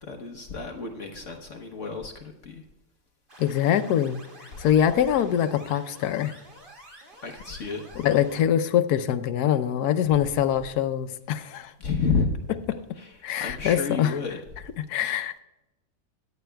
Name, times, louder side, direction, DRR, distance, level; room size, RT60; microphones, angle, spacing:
voice 1, 0.0-2.6 4.5-4.6 7.2-7.8 11.8-12.3 13.0-14.4, left 5 dB, 55° left, 4 dB, 1.2 m, -30 dB
sound 1, 3.3-8.4, right 1 dB, 30° right, 2.2 m, -49 dB
voice 2, 3.4-4.2 4.6-6.3 8.0-11.7 13.2-14.1 14.9-15.4, left 10 dB, 75° left, 10 dB, 1.2 m, -23 dB
16.0 x 10.5 x 2.3 m, 0.98 s
omnidirectional pair, 1.8 m